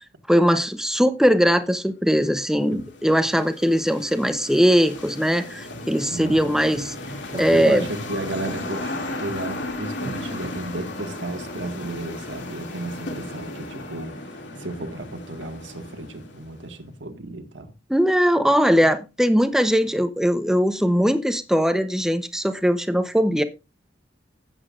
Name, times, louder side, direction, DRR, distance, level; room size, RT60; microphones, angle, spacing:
voice 1, 0.3-6.9 7.4-7.9 17.9-23.4, equal, 5° right, 0.8 m, -20 dB
sound 1, 2.2-16.7, left 2 dB, 75° left, 2.5 m, -35 dB
voice 2, 6.1-6.5 7.3-14.1 14.6-17.7, right 2 dB, 80° right, 1.8 m, -33 dB
16.0 x 8.1 x 2.5 m
head